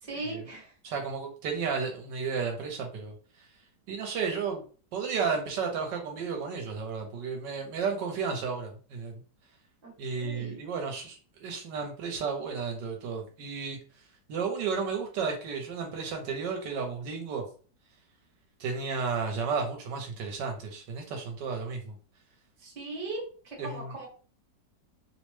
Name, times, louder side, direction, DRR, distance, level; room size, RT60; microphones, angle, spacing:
voice 1, 0.0-0.7 9.8-10.6 22.6-24.1, right 2 dB, 30° right, -3 dB, 1.1 m, -39 dB
voice 2, 0.8-3.1 3.9-4.6 4.9-9.2 10.0-13.8 14.3-17.4 18.6-21.9 23.6-23.9, right 5 dB, 80° right, 3 dB, 1.3 m, -33 dB
3.1 x 2.0 x 3.0 m, 0.39 s
omnidirectional pair, 1.9 m